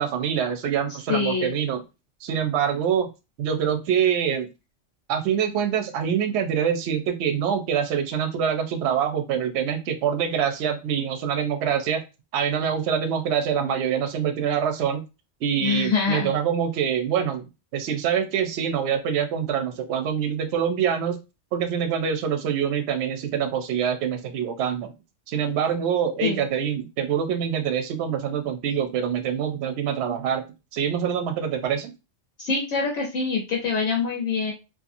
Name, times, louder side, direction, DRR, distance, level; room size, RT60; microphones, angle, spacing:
voice 1, 0.0-1.8 2.2-3.1 3.4-4.5 5.1-12.0 12.3-15.0 15.4-17.5 17.7-21.2 21.5-24.9 25.3-30.4 30.7-31.9, right 8 dB, 70° right, 6 dB, 0.8 m, -25 dB
voice 2, 1.1-1.5 15.6-16.3 26.2-26.4 32.4-34.5, left 5 dB, 75° left, -2 dB, 1.1 m, -25 dB
2.8 x 2.5 x 2.5 m, 0.28 s
omnidirectional pair, 1.3 m